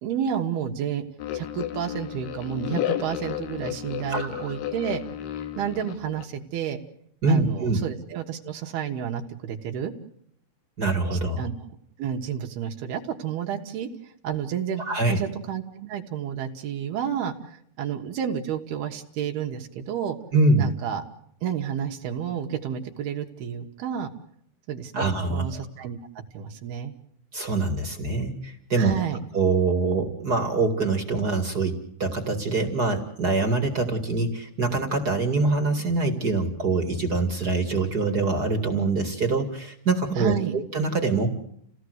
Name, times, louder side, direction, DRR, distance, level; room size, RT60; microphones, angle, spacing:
voice 1, 0.0-1.1 1.3-5.0 5.6-6.8 7.3-9.9 11.1-11.5 12.0-13.9 14.2-15.6 15.9-20.2 20.6-21.0 21.4-24.1 24.7-26.0 26.3-26.9 28.7-29.2 40.2-40.5, right 9 dB, 75° right, 2 dB, 3.4 m, -30 dB
sound 1, 1.2-6.3, left 11 dB, 90° left, 3.6 m, -32 dB
voice 2, 4.1-4.6 7.2-7.8 10.8-11.4 14.9-15.2 20.3-20.7 24.9-25.6 27.3-29.0 29.3-41.4, right 3 dB, 30° right, 6 dB, 2.1 m, -24 dB
29.5 x 17.0 x 8.0 m, 0.70 s
omnidirectional pair, 4.6 m